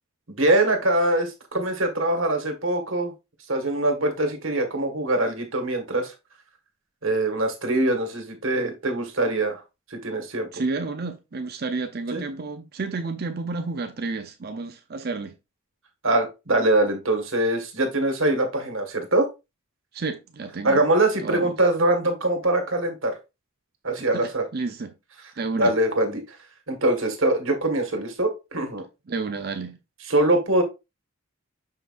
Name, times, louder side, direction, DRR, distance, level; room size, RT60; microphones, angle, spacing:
voice 1, 0.3-3.1 3.5-6.1 7.0-9.6 9.9-10.5 12.1-12.2 16.0-19.3 20.6-23.2 23.8-24.4 25.6-26.4 26.7-28.8 30.1-30.6, right 1 dB, 65° right, 1.8 m, -23 dB
voice 2, 10.5-15.3 19.9-20.8 21.2-21.5 24.1-24.9 25.4-25.7 29.1-29.8, right 3 dB, 50° right, 0.6 m, -31 dB
6.4 x 5.7 x 2.6 m
head